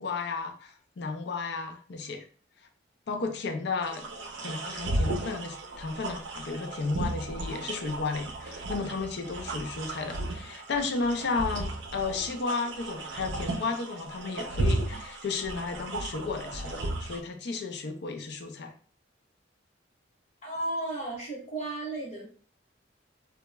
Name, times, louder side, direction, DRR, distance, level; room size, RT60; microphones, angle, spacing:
voice 1, 0.0-2.2 3.1-4.1 4.4-16.7 17.0-18.7, left 4 dB, 65° left, 6 dB, 0.5 m, -33 dB
sound 1, 3.8-17.2, right 2 dB, 70° right, 0.5 m, -34 dB
voice 2, 20.4-22.3, right 2 dB, 40° left, -4 dB, 1.1 m, -34 dB
2.9 x 2.2 x 2.2 m, 0.42 s
head